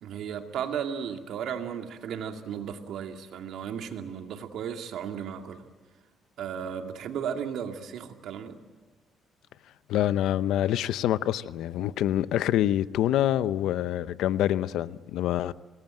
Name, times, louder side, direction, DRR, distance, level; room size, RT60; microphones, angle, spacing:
voice 1, 0.0-5.6 6.4-8.6, right 8 dB, 75° right, 2.4 m, -35 dB
voice 2, 9.9-15.5, left 12 dB, 85° left, 0.8 m, -26 dB
26.0 x 19.5 x 9.0 m
cardioid pair, 120°, 0 cm